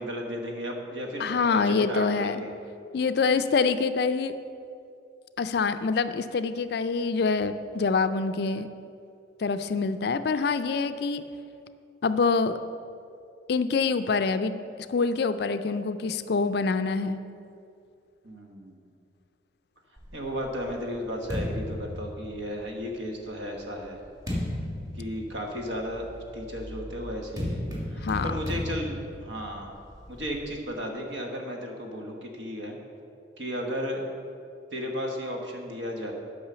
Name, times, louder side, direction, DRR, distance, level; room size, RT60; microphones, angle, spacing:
voice 1, 0.0-2.5 18.2-18.9 20.1-24.0 24.9-26.1 26.3-27.6 27.9-29.7 30.1-32.8 33.4-34.1 34.7-36.1, equal, 70° right, 2 dB, 1.3 m, -34 dB
voice 2, 1.2-2.4 2.9-4.3 5.4-8.7 9.4-11.2 12.0-12.6 13.5-14.6 14.9-17.2 28.0-28.4, left 4 dB, 55° left, 11 dB, 0.4 m, -25 dB
sound 1, 20.0-22.8 23.5-30.5, left 1 dB, 20° right, 1.6 m, -35 dB
8.7 x 5.6 x 6.8 m, 2.5 s
head